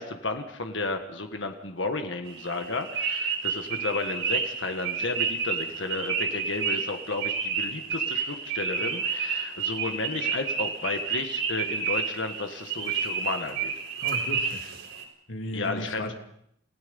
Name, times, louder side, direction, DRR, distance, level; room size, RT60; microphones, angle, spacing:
voice 1, 0.0-13.7 15.5-16.1, left 3 dB, 70° left, 6 dB, 1.6 m, -33 dB
sound 1, 2.3-15.0, right 5 dB, 75° right, 4.2 m, -30 dB
voice 2, 14.0-14.7 15.3-16.1, left 1 dB, 85° left, 4 dB, 2.8 m, -35 dB
28.5 x 17.0 x 5.5 m, 0.70 s
head